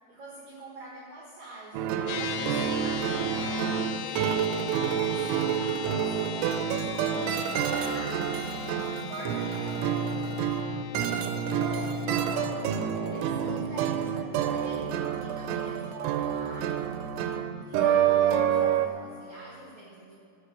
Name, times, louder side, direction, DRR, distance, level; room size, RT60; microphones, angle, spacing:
voice 1, 0.1-7.1 7.7-8.2 9.1-10.5 13.3-16.9 17.7-20.1, right 2 dB, 70° right, -3 dB, 1.8 m, -45 dB
sound 1, 1.7-18.9, right 8 dB, 85° right, 3.0 m, -28 dB
sound 2, 2.1-15.6, left 10 dB, 90° left, 2.4 m, -40 dB
voice 2, 6.8-8.5 11.0-14.9, left 3 dB, 70° left, 0 dB, 3.3 m, -43 dB
13.0 x 6.1 x 8.8 m, 2.6 s
omnidirectional pair, 5.4 m